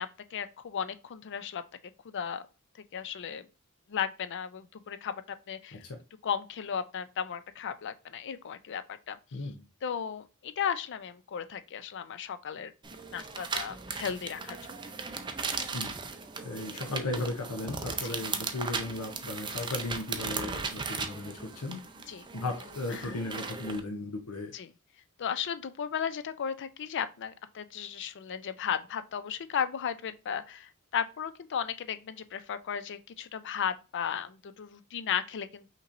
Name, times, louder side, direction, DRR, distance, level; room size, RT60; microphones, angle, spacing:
voice 1, 0.0-1.6 2.0-2.4 2.9-3.5 3.9-5.8 6.2-9.5 9.8-12.7 13.1-14.6 18.0-18.2 22.1-22.3 22.9-23.2 24.5-24.7 25.2-35.7, left 8 dB, 55° left, 0.4 m, -35 dB
sound 1, 12.8-23.8, right 4 dB, 20° right, 0.5 m, -37 dB
voice 2, 16.4-21.8 22.3-24.5, left 2 dB, 90° left, 0.7 m, -36 dB
5.5 x 3.0 x 2.5 m
head